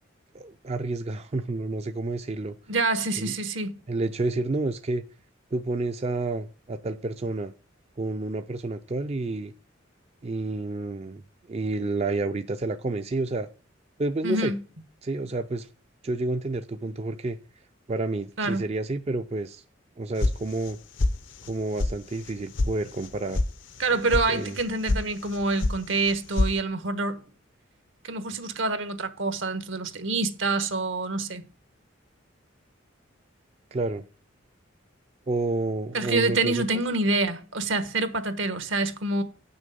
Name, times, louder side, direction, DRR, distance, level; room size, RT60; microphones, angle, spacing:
voice 1, 0.3-2.5 3.2-3.3 3.9-5.0 5.5-7.5 8.0-9.5 10.2-11.2 11.5-13.5 14.0-14.5 15.0-15.7 16.0-17.4 17.9-19.6 20.0-20.8 21.5-23.4 24.3-24.5 33.7-34.0 35.3-36.7, right 2 dB, 35° right, 0.4 m, -29 dB
voice 2, 2.7-3.8 14.2-14.6 18.4-18.7 23.8-27.2 28.0-31.4 35.9-39.2, right 3 dB, 75° right, 1.3 m, -26 dB
sound 1, 20.2-20.7 21.0-21.5 21.8-21.9 22.3-22.7 23.0-23.5 23.8-24.2 24.6-25.0 25.3-25.8 26.0-26.5, left 2 dB, 70° left, 0.8 m, -25 dB
8.3 x 6.4 x 5.3 m
head